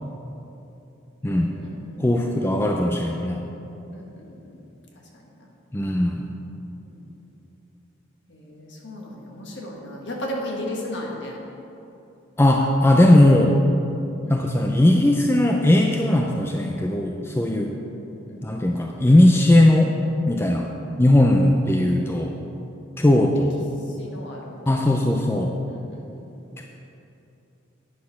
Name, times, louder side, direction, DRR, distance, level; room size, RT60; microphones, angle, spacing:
voice 1, 1.2-2.3 3.9-4.7 4.9-5.5 6.8-7.1 8.3-11.4 14.2-14.5 17.5-17.9 18.3-18.5 20.8-21.0 23.1-25.0 25.7-26.4, left 1 dB, 60° left, -2 dB, 1.6 m, -37 dB
voice 2, 2.0-3.4 5.7-6.2 12.4-13.6 14.3-17.7 18.4-20.0 20.3-20.7 21.0-22.3 23.0-23.5 24.7-25.6 26.6-26.7, left 1 dB, 10° left, 1 dB, 0.4 m, -18 dB
9.6 x 6.3 x 5.8 m, 2.9 s
head